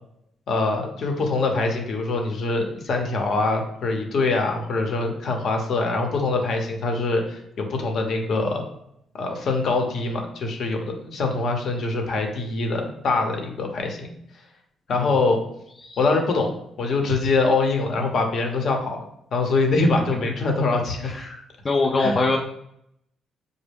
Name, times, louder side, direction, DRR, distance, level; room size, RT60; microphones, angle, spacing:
voice 1, 0.5-8.6 9.1-14.1 14.9-15.4 16.0-19.0 19.3-21.1 22.0-22.2, left 3 dB, 60° left, 3 dB, 0.9 m, -24 dB
voice 2, 21.0-21.4 21.6-22.4, left 3 dB, 35° left, 1 dB, 0.4 m, -22 dB
5.2 x 2.1 x 3.4 m, 0.75 s
cardioid pair, 90°, 0 cm